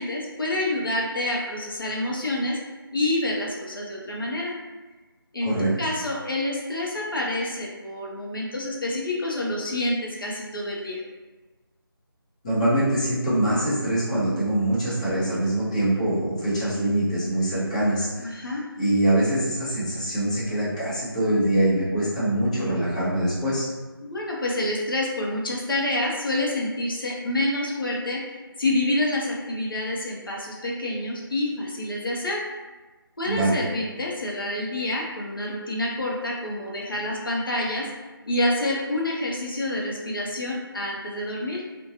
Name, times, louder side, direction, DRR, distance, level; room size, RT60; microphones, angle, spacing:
voice 1, 0.0-2.6 2.9-4.5 5.3-11.0 18.2-18.6 24.0-32.4 33.2-37.9 38.3-41.6, left 1 dB, 60° left, -3 dB, 0.6 m, -28 dB
voice 2, 5.4-5.7 12.4-18.5 18.8-23.7 33.2-33.6, right 1 dB, 15° left, -11 dB, 0.6 m, -24 dB
2.8 x 2.1 x 2.6 m, 1.2 s
figure-of-eight pair, 160°, 13 cm